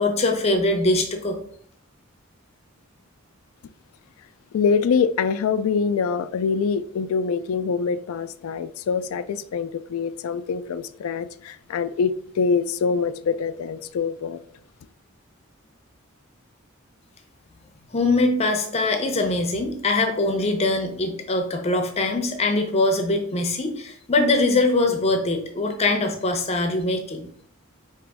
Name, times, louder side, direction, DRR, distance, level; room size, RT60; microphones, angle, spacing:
voice 1, 0.0-1.4 17.9-27.3, left 2 dB, 30° left, 4 dB, 0.6 m, -22 dB
voice 2, 4.5-14.4, left 5 dB, 85° left, 13 dB, 0.3 m, -24 dB
4.9 x 3.0 x 3.4 m, 0.63 s
head